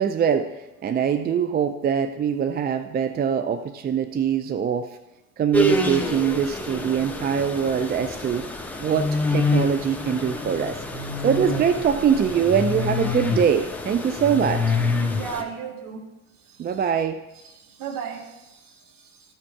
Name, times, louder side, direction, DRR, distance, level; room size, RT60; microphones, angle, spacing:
voice 1, 0.0-4.9 5.4-8.5 8.8-10.8 11.2-14.8 16.6-17.2, right 7 dB, 25° right, 10 dB, 0.4 m, -23 dB
sound 1, 5.5-15.4, left 2 dB, 5° left, 1.2 m, -27 dB
voice 2, 15.1-16.0 16.4-16.8 17.4-19.3, right 7 dB, 50° right, 2 dB, 2.2 m, -36 dB
14.0 x 5.0 x 4.8 m, 0.97 s
hypercardioid pair, 70°, 43 cm